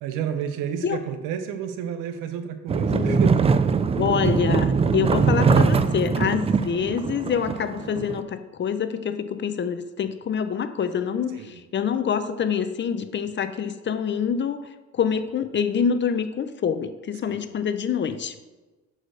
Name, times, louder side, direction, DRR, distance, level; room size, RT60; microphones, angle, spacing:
voice 1, 0.0-3.7 11.3-11.6 17.3-17.5, right 8 dB, 85° right, 8 dB, 1.0 m, -31 dB
sound 1, 2.7-8.2, right 5 dB, 20° right, 0.3 m, -22 dB
voice 2, 4.0-14.6 14.9-18.3, left 7 dB, 35° left, 10 dB, 0.6 m, -26 dB
6.3 x 5.0 x 6.2 m, 1.2 s
cardioid pair, 95°, 31 cm